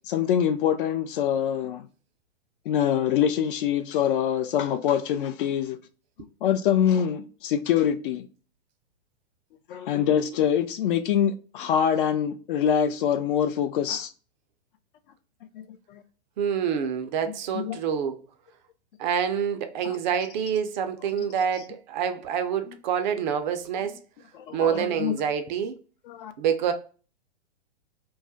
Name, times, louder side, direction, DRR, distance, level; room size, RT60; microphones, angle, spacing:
voice 1, 0.1-1.9 2.7-5.8 6.4-8.2 9.7-14.1 15.6-15.7 15.9-16.0 17.5-17.8 24.3-25.2 26.1-26.3, left 9 dB, 55° left, 0.4 m, -24 dB
voice 2, 16.4-18.2 19.0-24.0 24.5-25.8 26.4-26.7, right 7 dB, 45° right, 0.4 m, -27 dB
2.3 x 2.0 x 2.6 m
hypercardioid pair, 115°, 33 cm